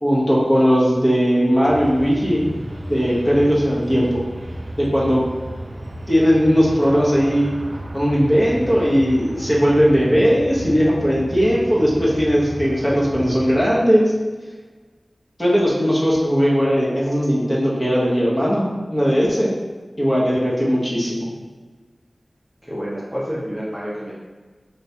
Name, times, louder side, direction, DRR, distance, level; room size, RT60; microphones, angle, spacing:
voice 1, 0.0-2.4 2.9-4.2 4.8-5.2 6.1-7.5 7.9-14.1 15.4-19.5 20.0-21.3, equal, 25° left, -6 dB, 1.0 m, -18 dB
sound 1, 1.7-13.7, right 1 dB, 45° right, 0.3 m, -33 dB
voice 2, 22.7-24.1, equal, ahead, -7 dB, 0.8 m, -28 dB
3.2 x 3.1 x 2.8 m, 1.4 s
wide cardioid pair, 45°, 0 cm